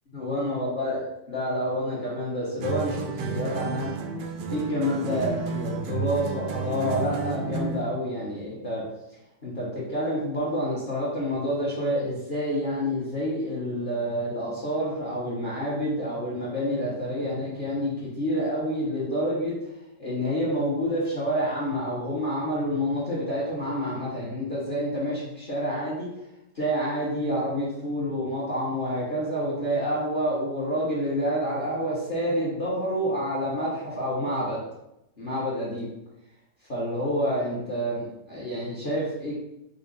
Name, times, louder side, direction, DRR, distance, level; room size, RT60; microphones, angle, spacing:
voice 1, 0.1-1.0 1.3-3.9 4.5-8.8 9.4-26.1 26.5-34.6 35.2-35.9 36.7-39.3, equal, 35° left, -7 dB, 1.0 m, -28 dB
sound 1, 2.6-7.9, right 6 dB, 90° right, 1.3 m, -32 dB
5.3 x 2.0 x 4.0 m, 0.88 s
omnidirectional pair, 2.0 m